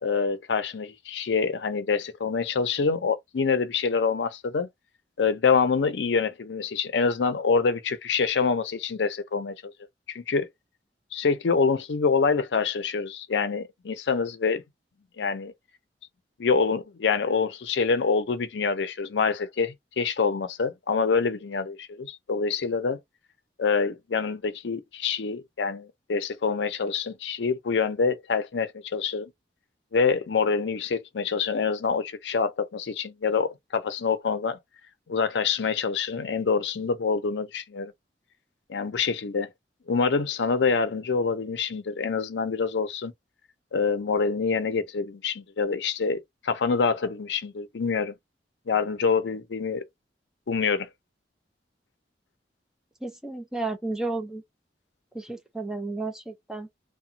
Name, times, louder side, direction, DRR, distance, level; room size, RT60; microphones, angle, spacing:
voice 1, 0.0-4.7 5.2-9.7 10.1-10.5 11.1-14.6 15.2-15.5 16.4-23.0 23.6-29.3 29.9-34.6 35.1-37.9 38.7-39.5 39.9-43.1 43.7-48.1 48.7-49.8 50.5-50.9, left 5 dB, 85° left, 0.5 m, -26 dB
voice 2, 53.0-54.4 55.1-56.7, right 3 dB, 5° right, 0.5 m, -32 dB
2.8 x 2.1 x 2.6 m
head